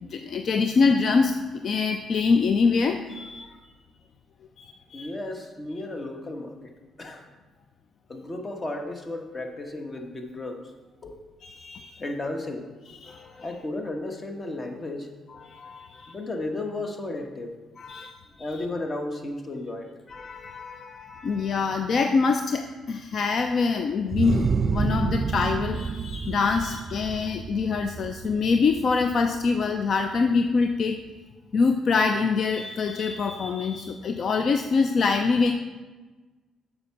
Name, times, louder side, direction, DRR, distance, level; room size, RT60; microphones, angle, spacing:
voice 1, 0.0-3.6 4.6-5.1 11.4-12.0 13.0-13.4 15.4-16.1 17.8-18.1 20.1-24.5 24.7-31.0 31.5-35.5, left 4 dB, 55° left, 5 dB, 0.5 m, -25 dB
voice 2, 4.9-6.7 7.0-7.3 8.1-10.7 11.0-11.2 12.0-12.7 13.4-15.1 16.1-17.6 18.4-19.9, left 2 dB, 30° left, 4 dB, 1.3 m, -34 dB
sound 1, 24.1-29.6, right 5 dB, 40° right, 0.4 m, -29 dB
7.9 x 5.6 x 5.9 m, 1.2 s
cardioid pair, 90°, 0 cm